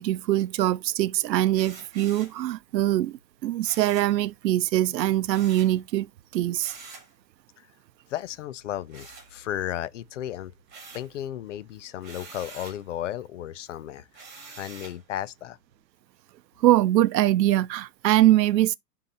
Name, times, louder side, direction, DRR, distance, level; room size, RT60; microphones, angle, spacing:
voice 1, 0.0-6.7 16.6-18.8, right 14 dB, 85° right, 0.6 m, -23 dB
sound 1, 1.5-2.4 3.6-4.2 5.3-5.8 6.6-7.1 8.9-9.8 10.2-11.2 12.0-12.8 14.1-15.0, right 4 dB, 20° right, 2.9 m, -46 dB
voice 2, 8.1-10.5 10.9-15.6, left 12 dB, 50° left, 0.5 m, -34 dB
11.0 x 3.8 x 2.7 m
hypercardioid pair, 150°, 49 cm